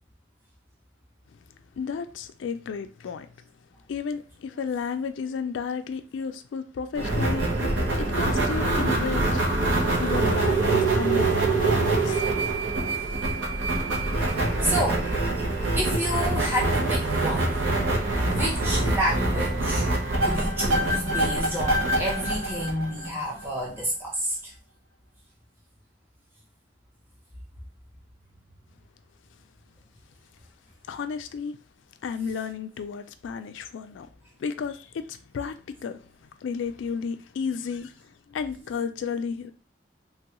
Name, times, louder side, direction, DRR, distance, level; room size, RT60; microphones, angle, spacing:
voice 1, 1.8-3.3 3.9-7.5 7.9-9.4 9.9-12.3 30.9-31.6 32.0-34.1 34.4-39.5, left 5 dB, 90° left, 0.3 m, -33 dB
sound 1, 6.9-23.4, right 2 dB, 85° right, 0.7 m, -25 dB
voice 2, 14.6-15.1 15.8-17.5 18.3-20.0 20.2-24.5, equal, 10° right, 0.7 m, -29 dB
3.2 x 2.3 x 2.9 m
head